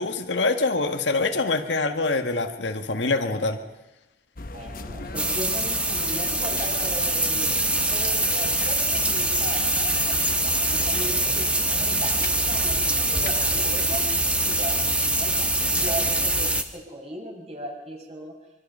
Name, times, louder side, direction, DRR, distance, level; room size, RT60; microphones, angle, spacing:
voice 1, 0.0-3.6, left 3 dB, 85° left, 6 dB, 1.8 m, -25 dB
sound 1, 4.4-16.6, left 2 dB, 50° left, 1.0 m, -37 dB
voice 2, 4.5-7.5 7.9-14.1 14.4-18.3, equal, 35° right, 0 dB, 6.1 m, -37 dB
sound 2, 5.2-16.6, right 2 dB, 5° right, 1.3 m, -24 dB
Bell, 8.2-11.1, left 7 dB, 25° left, 0.8 m, -37 dB
24.5 x 24.5 x 5.6 m, 1.0 s
head